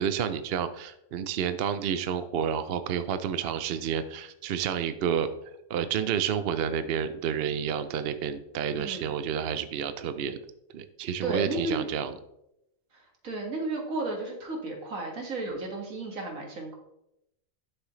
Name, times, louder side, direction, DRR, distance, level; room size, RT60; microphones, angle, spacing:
voice 1, 0.0-5.3 5.7-10.4 10.7-12.1, right 8 dB, 60° right, 11 dB, 0.7 m, -30 dB
voice 2, 8.7-9.1 11.2-11.8 12.9-16.7, right 2 dB, 80° right, 1 dB, 2.2 m, -33 dB
11.5 x 6.5 x 3.1 m, 0.84 s
omnidirectional pair, 1.4 m